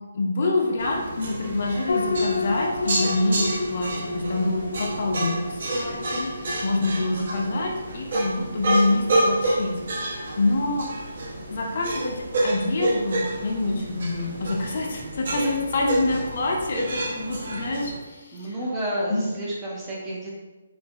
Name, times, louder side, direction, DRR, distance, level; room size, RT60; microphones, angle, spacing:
voice 1, 0.1-10.9 11.5-12.2 12.4-18.7 19.1-19.3, left 2 dB, 35° left, 0 dB, 0.6 m, -26 dB
sound 1, 0.8-18.0, right 1 dB, 45° right, 0.7 m, -29 dB
sound 2, 1.9-16.7, left 3 dB, 90° left, 0.4 m, -34 dB
voice 2, 15.0-15.3 18.3-20.4, right 1 dB, 10° right, -5 dB, 0.5 m, -31 dB
6.3 x 2.5 x 2.4 m, 1.2 s
hypercardioid pair, 180°, 0 cm